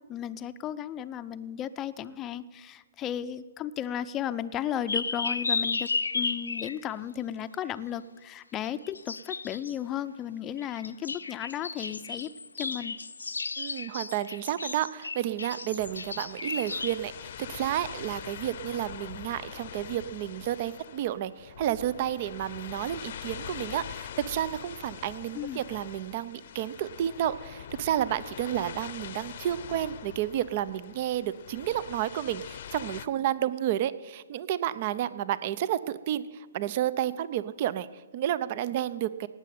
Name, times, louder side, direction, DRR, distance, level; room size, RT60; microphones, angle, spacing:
voice 1, 0.1-5.9 6.1-12.3 12.6-13.0 25.3-25.6, left 10 dB, 20° left, 10 dB, 0.6 m, -34 dB
sound 1, 4.9-6.8 8.6-9.7 10.6-17.0, left 4 dB, 85° left, 0.8 m, -33 dB
voice 2, 13.6-39.3, right 11 dB, 45° right, 16 dB, 0.7 m, -31 dB
sound 2, 15.8-33.1, left 9 dB, 55° left, 0.8 m, -43 dB
18.5 x 7.6 x 9.3 m, 1.5 s
hypercardioid pair, 135°, 0 cm